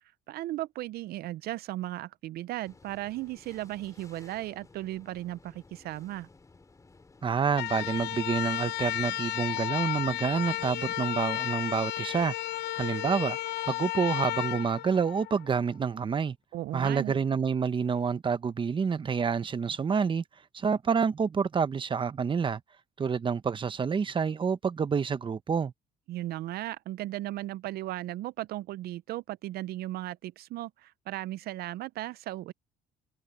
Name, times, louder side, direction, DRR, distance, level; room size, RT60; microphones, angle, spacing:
voice 1, 0.3-6.3 16.5-17.2 26.1-32.5, right 15 dB, 65° right, 0.4 m, -36 dB
sound 1, 2.6-11.0, left 3 dB, 20° left, 3.6 m, -57 dB
voice 2, 7.2-12.3 12.7-13.4 13.7-16.4 16.7-20.2 20.5-22.6 23.0-25.7, right 6 dB, 30° right, 1.0 m, -28 dB
sound 2, 7.5-15.6, left 15 dB, 75° left, 0.9 m, -33 dB
cardioid pair, 110°, 17 cm